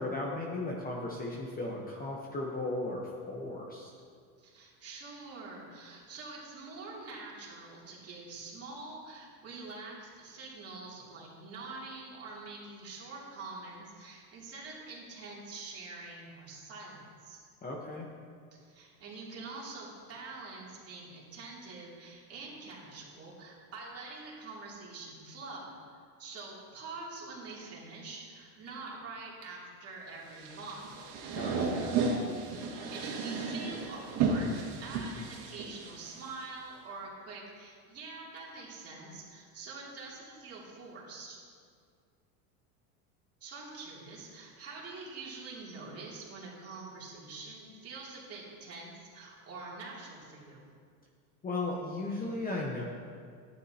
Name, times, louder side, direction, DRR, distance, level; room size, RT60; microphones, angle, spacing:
voice 1, 0.0-3.9 17.6-18.1 31.3-32.0 51.4-52.8, left 2 dB, 20° left, -2 dB, 1.0 m, -36 dB
voice 2, 4.4-17.4 18.5-30.9 32.5-34.6 34.8-41.4 43.4-50.6, right 3 dB, 35° right, -5 dB, 2.8 m, -45 dB
sound 1, 30.3-36.4, right 4 dB, 60° right, 2.0 m, -33 dB
12.0 x 9.7 x 2.9 m, 2.1 s
supercardioid pair, 125°, 44 cm